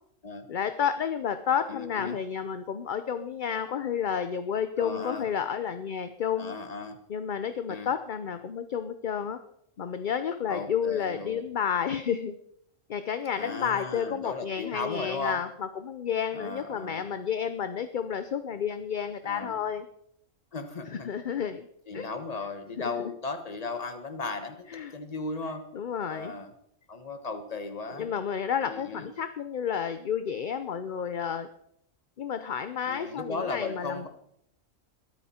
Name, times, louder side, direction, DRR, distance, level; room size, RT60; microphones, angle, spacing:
voice 1, 0.5-6.5 7.1-9.4 9.8-12.3 12.9-19.9 20.9-21.7 21.9-22.1 22.8-22.9 24.7-24.9 25.7-26.3 27.9-31.5 32.2-34.1, left 8 dB, 50° left, 10 dB, 0.7 m, -31 dB
voice 2, 1.7-2.2 4.8-5.2 6.4-7.0 7.7-7.9 10.5-11.4 13.3-15.4 16.3-17.0 19.2-19.5 20.5-21.1 21.9-25.6 26.1-26.5 26.9-28.1 28.6-29.1 32.9-34.1, left 3 dB, 30° left, 7 dB, 1.4 m, -36 dB
22.5 x 9.3 x 4.3 m, 0.74 s
omnidirectional pair, 1.4 m